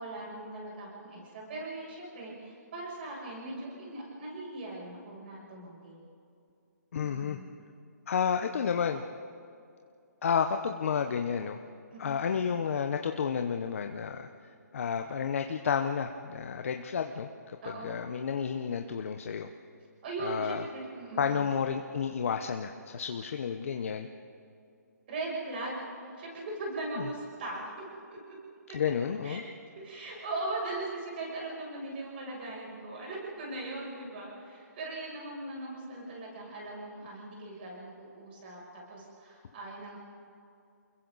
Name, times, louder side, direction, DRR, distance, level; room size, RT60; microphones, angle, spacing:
voice 1, 0.0-6.0 7.0-7.5 11.9-12.2 17.6-18.0 20.0-21.4 25.1-27.8 28.1-28.4 28.7-28.8 29.2-29.4 29.8-40.0, right 2 dB, 35° right, -3 dB, 7.3 m, -39 dB
voice 2, 6.9-7.4 8.1-9.0 10.2-11.6 12.0-14.3 14.7-17.3 17.8-19.5 20.2-20.6 21.2-24.1 28.7-29.4, left 7 dB, 50° left, 6 dB, 0.9 m, -31 dB
29.5 x 21.5 x 4.1 m, 2.5 s
hypercardioid pair, 165°, 10 cm